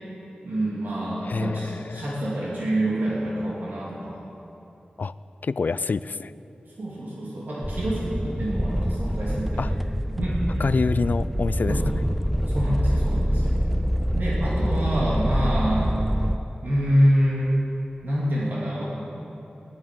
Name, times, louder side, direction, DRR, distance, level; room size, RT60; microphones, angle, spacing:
voice 1, 0.4-4.2 6.8-9.8 10.2-10.6 11.7-11.9 12.5-13.6 14.1-15.9 16.6-17.5 18.0-18.8, equal, 75° right, -7 dB, 3.0 m, -26 dB
voice 2, 1.2-2.2 5.0-5.1 5.4-6.3 9.6-9.7 10.6-11.8, left 4 dB, 65° left, 15 dB, 0.3 m, -26 dB
sound 1, 7.6-16.4, equal, ahead, 0.4 m, -25 dB
17.5 x 11.0 x 5.4 m, 2.9 s
cardioid pair, 55°, 3 cm